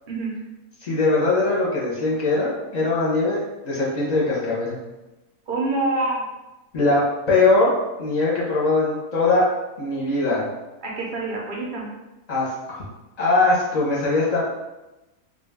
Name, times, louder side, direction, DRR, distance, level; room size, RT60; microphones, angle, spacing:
voice 1, 0.8-4.8 6.7-7.0 7.3-9.5 9.8-10.5 12.3-12.8 13.2-14.4, left 3 dB, 35° left, -6 dB, 0.7 m, -21 dB
voice 2, 5.5-6.2 10.8-11.9, right 2 dB, 55° right, -3 dB, 0.5 m, -26 dB
2.5 x 2.2 x 3.4 m, 1.0 s
omnidirectional pair, 1.5 m